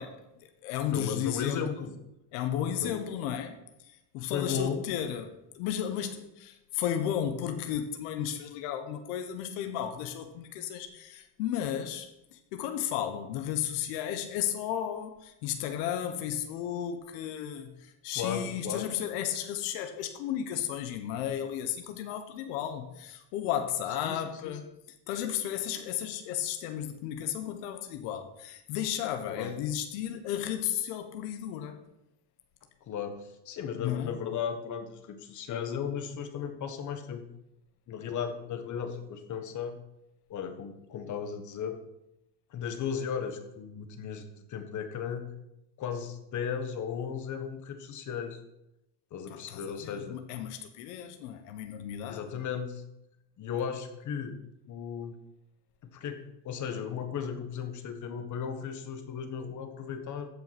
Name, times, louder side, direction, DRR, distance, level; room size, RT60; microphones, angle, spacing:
voice 1, 0.0-1.8 2.3-24.7 25.1-31.8 33.8-34.2 49.3-52.2, left 10 dB, 85° left, 1.4 m, -34 dB
voice 2, 0.9-1.9 2.8-3.0 4.2-4.8 18.1-18.9 24.0-24.5 29.3-29.5 32.9-37.2 37.9-39.8 40.3-41.9 42.5-45.2 45.8-48.4 49.1-50.2 52.1-52.8 53.4-54.4 54.7-55.1 55.9-60.3, left 7 dB, 40° left, 1.5 m, -35 dB
15.0 x 5.8 x 6.1 m
cardioid pair, 145°, 45 cm